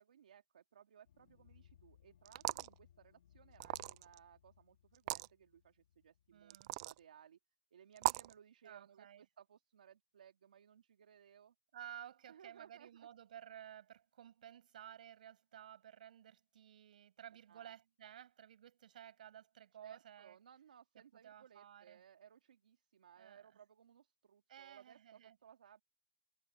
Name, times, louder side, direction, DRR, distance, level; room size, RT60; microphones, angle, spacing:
voice 1, 0.0-7.4 7.7-11.5 12.3-13.1 17.5-17.7 19.8-25.8, right 8 dB, 90° right, 2.3 m, -62 dB
sound 1, 1.1-7.0, left 10 dB, 70° left, 2.7 m, -67 dB
sound 2, 2.3-2.7 3.6-4.2 4.9-5.3 6.5-7.0 8.0-8.3, right 22 dB, 40° right, 0.3 m, -38 dB
voice 2, 6.3-6.7 8.6-9.2 11.7-20.4 21.1-22.0 23.2-23.4 24.5-25.4, right 10 dB, 70° right, 6.8 m, -55 dB
hypercardioid pair, 155°, 5 cm